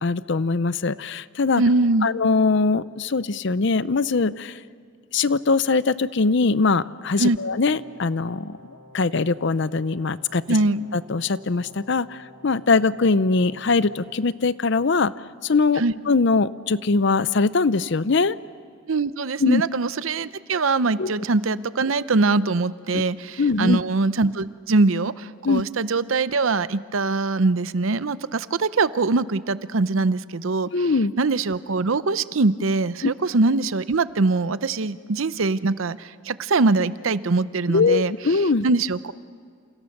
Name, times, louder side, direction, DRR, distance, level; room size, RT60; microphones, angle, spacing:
voice 1, 0.0-1.6 2.0-4.6 5.1-8.6 8.9-10.4 10.9-15.1 15.4-18.4 19.4-19.6 21.0-21.1 22.9-23.0 23.4-23.8 25.4-25.6 30.7-31.1 33.0-33.1 37.7-38.6, left 4 dB, 60° left, 16 dB, 0.6 m, -21 dB
voice 2, 1.6-2.1 7.2-7.4 10.5-10.8 15.8-15.9 18.9-30.9 31.2-38.1 38.6-39.1, right 3 dB, 75° right, 15 dB, 0.7 m, -22 dB
Brass instrument, 7.3-14.2, left 1 dB, 55° right, 6.9 m, -49 dB
28.5 x 28.0 x 6.6 m, 2.1 s
head